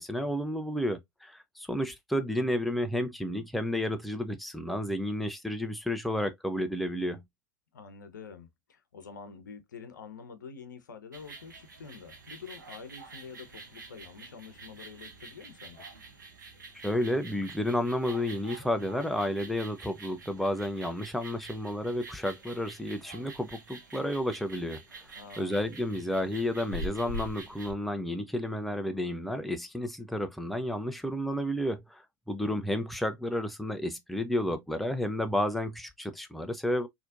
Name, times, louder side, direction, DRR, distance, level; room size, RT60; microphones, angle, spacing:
voice 1, 0.0-7.2 16.8-36.9, left 1 dB, ahead, 0.5 m, -31 dB
voice 2, 7.7-15.9 25.2-25.7, left 5 dB, 80° left, 0.8 m, -47 dB
sound 1, 11.1-27.7, right 1 dB, 85° right, 1.1 m, -46 dB
4.1 x 2.8 x 2.5 m
hypercardioid pair, 90°, 10 cm